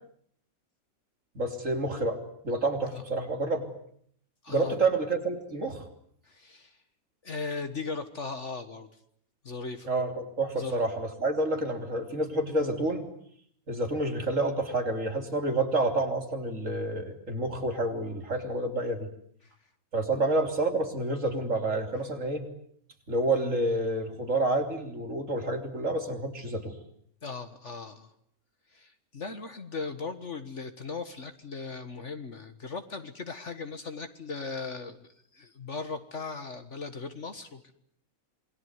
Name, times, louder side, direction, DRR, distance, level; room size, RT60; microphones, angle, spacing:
voice 1, 1.4-2.2 2.4-3.7 4.5-5.8 9.9-13.1 13.7-19.1 19.9-22.4 23.1-26.8, right 2 dB, 60° right, 5 dB, 3.7 m, -29 dB
voice 2, 4.4-4.8 6.3-6.8 7.2-8.9 9.4-9.9 10.5-10.8 19.4-19.5 27.2-28.1 28.7-37.7, left 4 dB, 55° left, 8 dB, 1.9 m, -38 dB
27.5 x 22.0 x 9.6 m, 0.67 s
omnidirectional pair, 1.5 m